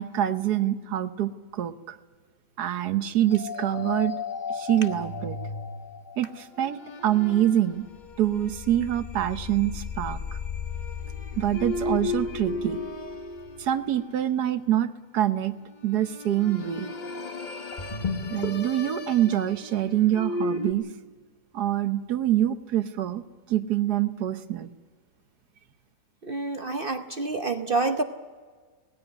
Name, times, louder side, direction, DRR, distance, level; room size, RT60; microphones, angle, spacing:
voice 1, 0.0-2.0 2.6-4.2 4.5-5.4 6.2-7.9 8.2-10.2 11.4-12.8 13.6-15.6 15.8-16.9 18.3-20.9 21.5-24.7, right 12 dB, 75° right, 11 dB, 1.5 m, -25 dB
sound 1, 3.3-14.4 15.9-20.7, left 3 dB, 35° left, 1.0 m, -34 dB
voice 2, 26.2-28.0, right 3 dB, 40° right, 7 dB, 0.9 m, -27 dB
19.5 x 16.0 x 9.8 m, 1.5 s
omnidirectional pair, 1.7 m